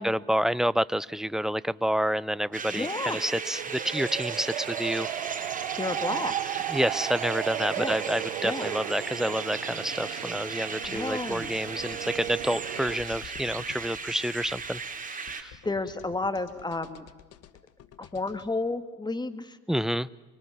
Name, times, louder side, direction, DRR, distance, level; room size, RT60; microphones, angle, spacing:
voice 1, 0.0-5.1 6.7-14.8 15.1-15.5 19.7-20.1, equal, ahead, 19 dB, 0.7 m, -29 dB
sound 1, 2.3-13.0, right 15 dB, 85° right, 0.9 m, -36 dB
sound 2, 2.5-15.4, right 5 dB, 25° right, 4.0 m, -37 dB
voice 2, 2.7-3.3 5.8-6.6 7.8-8.0 8.4-8.7 10.9-11.5 15.6-17.0 18.0-19.6, left 2 dB, 15° left, 10 dB, 2.5 m, -32 dB
sound 3, 10.8-18.5, left 10 dB, 55° left, 1.9 m, -51 dB
25.5 x 25.0 x 7.3 m, 1.3 s
hypercardioid pair, 65°, 30 cm